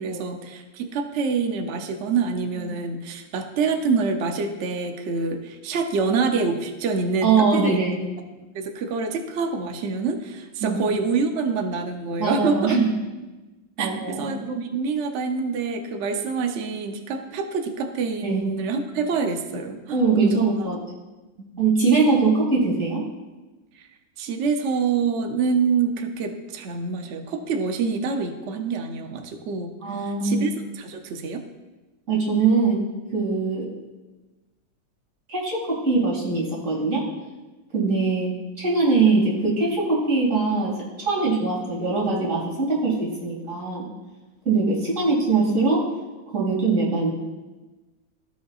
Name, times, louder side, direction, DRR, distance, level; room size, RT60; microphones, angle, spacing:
voice 1, 0.0-7.8 8.5-12.8 13.8-20.7 21.4-21.6 23.7-23.9 24.2-29.7 30.0-31.4 37.8-37.9, right 5 dB, 80° right, 5 dB, 0.6 m, -26 dB
voice 2, 7.2-8.0 10.6-10.8 12.2-12.9 13.8-14.3 18.2-18.4 19.9-20.8 21.6-23.0 29.8-30.4 32.1-32.8 33.1-33.7 35.3-37.0 37.7-38.3 38.6-43.9 44.4-45.8 46.3-47.1, right 4 dB, 45° right, -5 dB, 2.7 m, -22 dB
15.5 x 5.6 x 2.4 m, 1.2 s
omnidirectional pair, 2.1 m